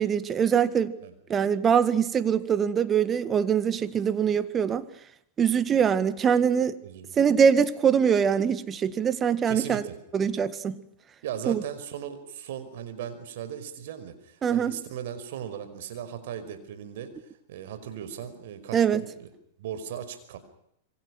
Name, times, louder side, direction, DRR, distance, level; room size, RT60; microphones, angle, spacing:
voice 1, 0.0-1.0 1.3-4.9 5.4-6.7 7.2-9.8 10.1-10.7 11.5-11.6 14.4-14.8 18.7-19.0, right 7 dB, 25° right, 1.9 m, -23 dB
voice 2, 6.8-7.1 9.5-10.0 11.2-17.1 17.5-19.3 19.6-20.4, right 9 dB, 65° right, 5.2 m, -37 dB
27.5 x 23.5 x 6.3 m
hypercardioid pair, 105°, 0 cm